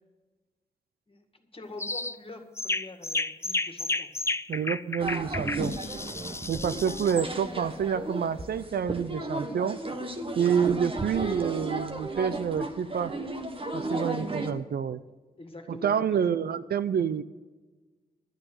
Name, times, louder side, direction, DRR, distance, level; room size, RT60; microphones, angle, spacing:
voice 1, 1.1-4.1 10.4-10.6 13.8-14.1 15.4-16.3, left 2 dB, 35° left, 5 dB, 1.9 m, -44 dB
sound 1, 1.8-2.2 2.6-7.3, left 2 dB, 15° left, 0.4 m, -32 dB
voice 2, 4.5-5.7 6.5-9.8 10.4-13.1 13.7-15.0 15.7-17.2, right 7 dB, 80° right, 14 dB, 0.5 m, -28 dB
sound 2, 5.0-14.5, right 2 dB, 35° right, 1.3 m, -34 dB
12.0 x 8.8 x 6.4 m, 1.3 s
cardioid pair, 55°, 16 cm